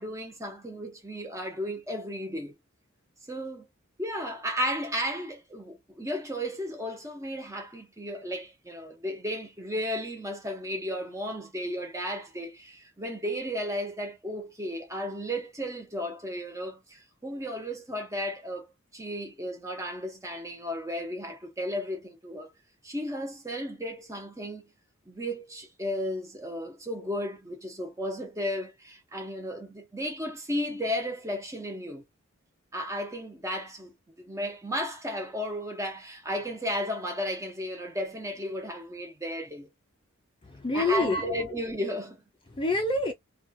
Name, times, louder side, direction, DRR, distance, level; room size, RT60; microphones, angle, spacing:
voice 1, 0.0-2.5 3.3-3.6 4.0-18.7 18.9-22.5 22.8-24.7 25.1-32.0 32.7-39.7 40.7-42.2, equal, 15° right, 0.9 m, -34 dB
voice 2, 40.4-41.6 42.5-43.1, left 2 dB, 25° left, 0.5 m, -27 dB
2.8 x 2.3 x 2.7 m
head